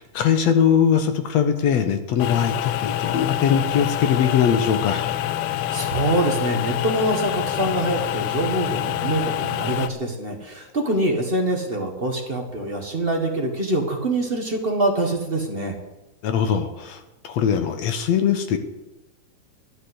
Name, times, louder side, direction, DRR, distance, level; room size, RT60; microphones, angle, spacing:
voice 1, 0.0-5.1 16.2-18.6, left 8 dB, 65° left, 8 dB, 2.1 m, -21 dB
sound 1, 2.2-9.9, left 12 dB, 90° left, 2.2 m, -26 dB
voice 2, 5.7-15.7, right 1 dB, 30° right, 2 dB, 1.0 m, -24 dB
12.0 x 10.5 x 8.0 m, 1.0 s
omnidirectional pair, 3.6 m